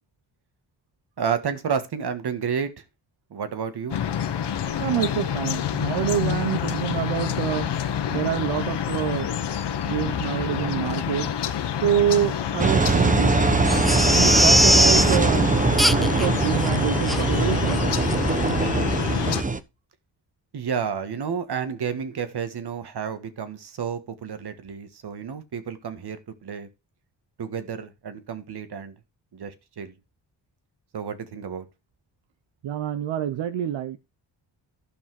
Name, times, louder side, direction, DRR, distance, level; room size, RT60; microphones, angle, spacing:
voice 1, 1.2-2.7 3.3-4.0 20.5-26.7 27.4-28.9 29.3-29.9 30.9-31.6, right 7 dB, 60° right, 1.7 m, -31 dB
sound 1, 3.9-19.4, left 9 dB, 65° left, 1.2 m, -28 dB
voice 2, 4.8-7.7 8.1-9.3 9.8-11.3 11.8-13.5 14.1-15.5 15.9-17.9 32.6-34.0, right 10 dB, 85° right, 0.8 m, -26 dB
Engine, 12.6-19.6, right 3 dB, 20° right, 0.9 m, -22 dB
Crying sobbing, 13.7-15.2 15.8-16.3 16.6-16.7 17.1-17.2 17.7-17.8 18.1-18.2, equal, ahead, 0.5 m, -20 dB
12.0 x 5.7 x 4.8 m
cardioid pair, 95°, 44 cm